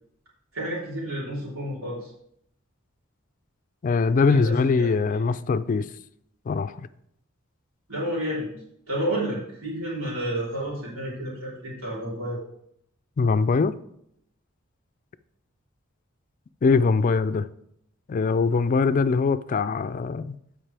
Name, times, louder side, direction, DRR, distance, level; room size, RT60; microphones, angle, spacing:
voice 1, 0.5-2.1 4.3-4.9 7.9-8.5 8.9-12.4, right 1 dB, 85° right, 3.7 m, -30 dB
voice 2, 3.8-5.9 6.5-6.8 13.2-13.8 16.6-17.4 18.1-20.4, left 4 dB, 40° left, 0.3 m, -22 dB
15.0 x 5.0 x 3.4 m
head